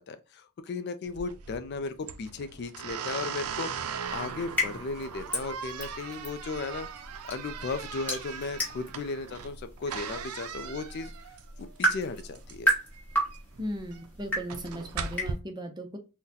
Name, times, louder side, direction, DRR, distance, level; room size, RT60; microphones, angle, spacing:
voice 1, 0.0-6.9 7.3-11.1 11.6-12.7, left 4 dB, 50° left, 0.3 m, -36 dB
sound 1, 1.1-15.3, right 7 dB, 85° right, 0.4 m, -39 dB
sound 2, 4.0-15.4, right 1 dB, 5° left, 1.1 m, -34 dB
voice 2, 13.6-16.0, equal, 20° right, 0.5 m, -37 dB
3.8 x 2.1 x 2.7 m
head